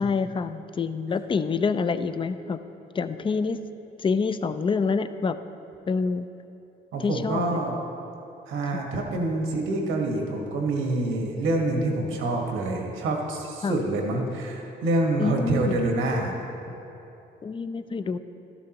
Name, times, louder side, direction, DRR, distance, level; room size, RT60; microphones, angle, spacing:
voice 1, 0.0-2.6 2.9-3.6 4.0-5.4 5.9-6.3 7.0-7.6 8.7-8.8 13.6-13.8 15.2-15.8 17.4-18.2, left 5 dB, 25° left, 11 dB, 0.4 m, -27 dB
voice 2, 6.9-7.8 8.5-16.3, right 2 dB, 85° right, 1 dB, 1.5 m, -26 dB
12.5 x 12.0 x 3.0 m, 2.9 s
cardioid pair, 90°, 20 cm